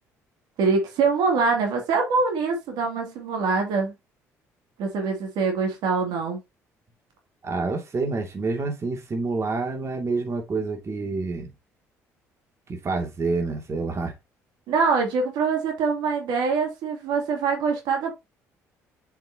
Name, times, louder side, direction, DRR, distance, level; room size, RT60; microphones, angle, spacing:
voice 1, 0.6-3.9 4.8-6.4 14.7-18.1, right 4 dB, 70° right, 2.7 m, -24 dB
voice 2, 7.4-11.5 12.7-14.1, right 3 dB, 40° right, 2.5 m, -28 dB
7.5 x 5.9 x 2.9 m
hypercardioid pair, 60°, 8 cm